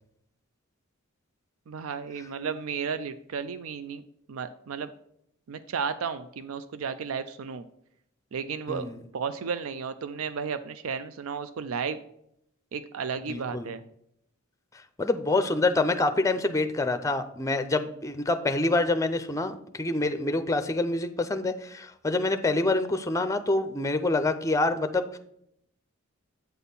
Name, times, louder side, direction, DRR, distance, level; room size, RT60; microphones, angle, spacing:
voice 1, 1.7-4.0 4.3-4.9 5.5-7.7 8.3-8.9 9.1-12.0 12.7-13.8, right 6 dB, 80° right, 12 dB, 0.4 m, -33 dB
voice 2, 13.3-13.7 15.0-25.2, left 2 dB, 15° left, 9 dB, 0.5 m, -26 dB
8.1 x 4.3 x 5.3 m, 0.74 s
head